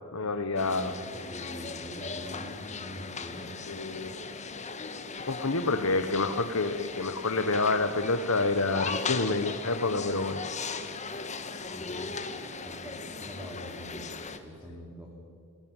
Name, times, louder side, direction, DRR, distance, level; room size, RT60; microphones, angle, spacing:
voice 1, 0.1-0.9 3.7-4.1 5.3-10.4, left 3 dB, 65° left, 8 dB, 1.4 m, -28 dB
sound 1, 0.6-14.4, left 4 dB, 30° left, 1.7 m, -38 dB
voice 2, 0.8-3.5 11.7-12.1 12.6-15.1, equal, 10° right, -1 dB, 3.7 m, -44 dB
29.0 x 17.5 x 9.1 m, 2.5 s
head